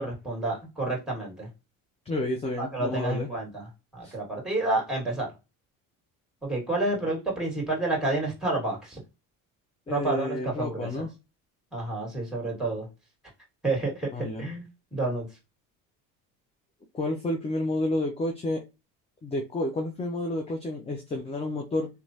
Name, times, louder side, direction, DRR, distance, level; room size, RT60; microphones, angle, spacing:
voice 1, 0.0-1.5 2.6-3.6 3.9-5.3 6.4-9.0 9.9-10.9 11.7-12.9 13.6-14.7 14.9-15.3, right 2 dB, ahead, -2 dB, 1.8 m, -29 dB
voice 2, 2.1-3.3 4.0-4.1 9.9-11.1 14.1-14.4 16.9-18.6 19.2-21.9, left 1 dB, 15° left, 3 dB, 0.5 m, -30 dB
2.9 x 2.2 x 2.7 m, 0.27 s
supercardioid pair, 85°, 39 cm